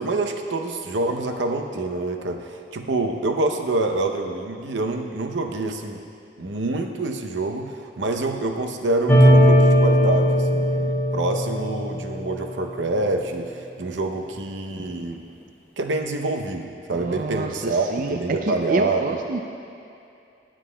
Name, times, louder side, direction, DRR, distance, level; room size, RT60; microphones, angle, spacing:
voice 1, 0.0-6.0 6.4-15.2 15.8-19.2, right 2 dB, 80° right, 4 dB, 0.7 m, -26 dB
sound 1, 9.1-12.5, equal, 10° left, 0.8 m, -18 dB
voice 2, 16.9-19.4, right 3 dB, 45° right, 3 dB, 0.4 m, -28 dB
20.0 x 7.5 x 2.2 m, 2.6 s
head